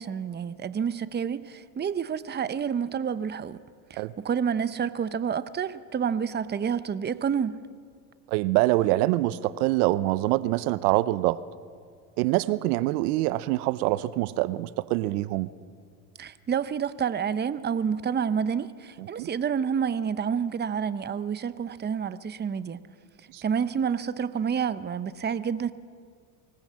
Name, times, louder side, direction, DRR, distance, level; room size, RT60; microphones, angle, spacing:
voice 1, 0.0-3.6 3.9-7.6 16.2-22.8 23.4-25.7, right 7 dB, 20° right, 0.8 m, -29 dB
voice 2, 8.3-11.4 12.2-15.5 19.2-19.3 23.3-23.4, right 17 dB, 75° right, 0.8 m, -25 dB
25.0 x 18.5 x 7.6 m
hypercardioid pair, 85°, 45 cm